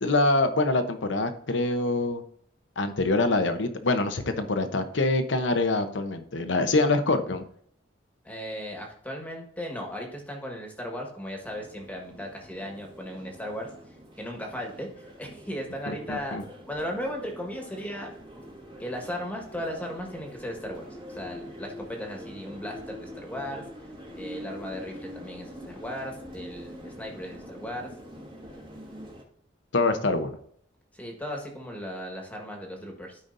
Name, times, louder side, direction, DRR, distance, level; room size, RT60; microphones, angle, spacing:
voice 1, 0.0-2.2 2.8-7.4 15.9-16.4 29.7-30.3, left 2 dB, 80° left, 9 dB, 0.9 m, -25 dB
voice 2, 8.2-16.4 16.7-18.1 18.8-23.6 24.2-27.9 30.9-33.2, equal, 10° left, 1 dB, 1.6 m, -36 dB
sound 1, 11.4-29.2, equal, 25° right, 1.7 m, -44 dB
13.0 x 5.1 x 2.6 m, 0.66 s
head